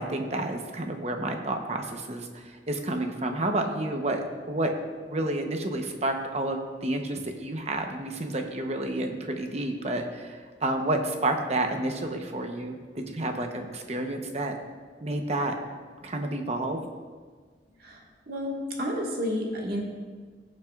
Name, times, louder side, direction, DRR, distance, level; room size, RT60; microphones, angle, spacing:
voice 1, 0.0-4.7 5.1-14.5 15.0-15.5 16.0-16.8, right 1 dB, 35° right, 4 dB, 0.9 m, -30 dB
voice 2, 18.3-19.8, equal, 60° right, -2 dB, 1.7 m, -30 dB
17.0 x 7.6 x 2.4 m, 1.5 s
head